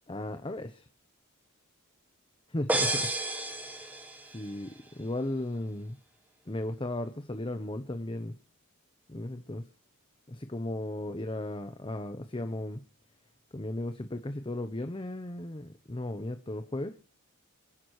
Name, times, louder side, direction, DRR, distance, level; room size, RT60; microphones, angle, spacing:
voice 1, 0.1-0.9 2.5-3.1 4.3-6.0 6.5-8.3 9.1-9.7 10.3-12.8 13.5-16.9, left 1 dB, 25° left, 0.8 m, -36 dB
sound 1, 2.7-4.5, right 1 dB, 10° right, 2.0 m, -31 dB
28.5 x 11.0 x 3.1 m
head